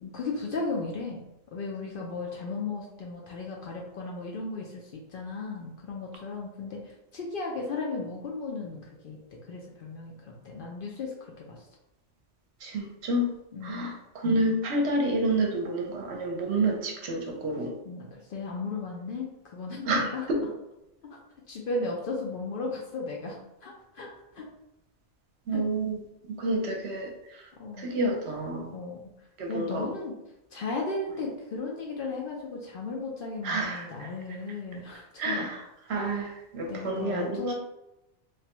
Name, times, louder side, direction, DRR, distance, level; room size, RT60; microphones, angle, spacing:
voice 1, 0.0-1.2 1.5-9.2 9.4-11.7 13.5-13.9 17.9-20.3 21.1-21.2 21.5-24.1 24.3-24.5 25.5-25.6 27.6-28.0 28.7-29.1 29.5-30.1 30.5-35.5 36.7-37.5, left 3 dB, 60° left, -1 dB, 0.6 m, -35 dB
voice 2, 12.6-13.3 13.6-17.7 19.9-20.4 25.5-26.0 26.3-27.5 27.8-28.7 29.4-29.9 33.4-34.1 35.2-37.5, right 1 dB, 70° right, 1 dB, 0.9 m, -29 dB
3.2 x 2.1 x 2.9 m, 0.91 s
omnidirectional pair, 1.2 m